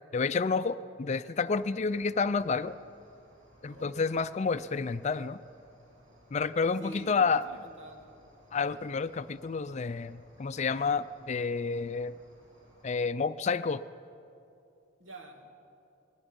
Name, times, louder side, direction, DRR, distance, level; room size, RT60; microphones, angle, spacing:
voice 1, 0.1-2.7 3.6-5.4 6.3-7.5 8.5-12.2 12.8-13.8, left 4 dB, 35° left, 13 dB, 0.4 m, -30 dB
Cricket, 1.4-12.8, equal, 45° right, 6.2 m, -60 dB
voice 2, 3.6-4.9 6.8-8.1 15.0-15.5, right 1 dB, 80° right, 3 dB, 2.5 m, -49 dB
28.0 x 21.0 x 5.3 m, 2.7 s
head